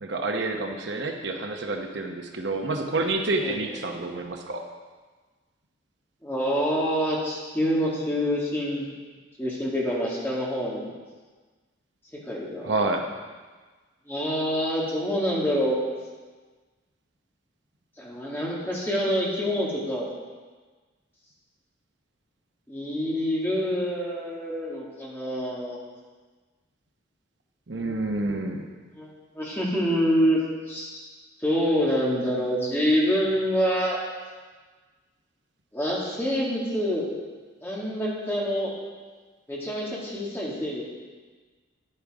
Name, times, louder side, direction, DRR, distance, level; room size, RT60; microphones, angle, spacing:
voice 1, 0.0-4.6 12.6-13.1 27.7-28.7, right 2 dB, 65° right, 3 dB, 0.9 m, -28 dB
voice 2, 6.2-8.9 9.4-10.9 12.1-12.7 14.1-15.8 18.0-20.1 22.7-25.8 27.7-28.0 28.3-28.4 28.9-29.1 29.3-30.4 30.7-30.9 31.4-34.0 35.7-37.1 37.6-38.7 39.5-40.8, equal, 10° left, -5 dB, 2.2 m, -26 dB
10.5 x 8.9 x 5.0 m, 1.4 s
head